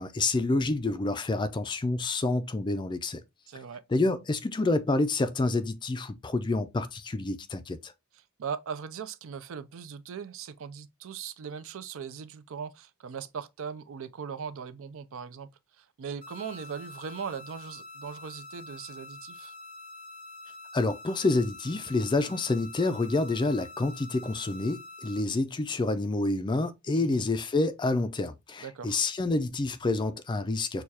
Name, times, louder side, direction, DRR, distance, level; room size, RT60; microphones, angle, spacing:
voice 1, 0.0-3.2 3.9-7.9 20.7-30.8, left 2 dB, 20° left, 0.3 m, -28 dB
voice 2, 3.5-3.8 8.4-15.5 15.8-19.5 26.9-27.2 28.6-29.0, right 6 dB, 65° right, 0.4 m, -39 dB
sound 1, 16.2-25.2, left 3 dB, 30° right, 1.4 m, -46 dB
6.4 x 2.3 x 2.7 m
head